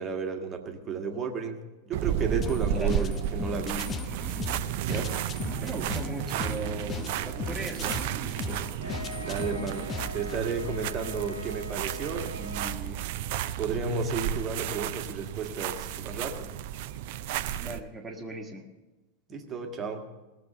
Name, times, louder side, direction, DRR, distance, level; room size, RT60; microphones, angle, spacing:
voice 1, 0.0-3.9 4.9-5.2 8.5-13.0 13.6-16.5 19.3-20.1, right 5 dB, 25° right, 4 dB, 1.6 m, -33 dB
sound 1, 1.9-17.8, right 11 dB, 50° right, 0.5 m, -33 dB
sound 2, 2.4-10.4, left 6 dB, 25° left, 0.5 m, -38 dB
voice 2, 2.7-3.1 5.6-8.0 17.6-18.7, right 2 dB, 10° right, 0 dB, 1.8 m, -38 dB
Wind instrument woodwind instrument, 8.8-12.8, left 1 dB, 90° left, 1.2 m, -43 dB
19.0 x 7.1 x 6.8 m, 1.1 s
figure-of-eight pair, 90°, 0 cm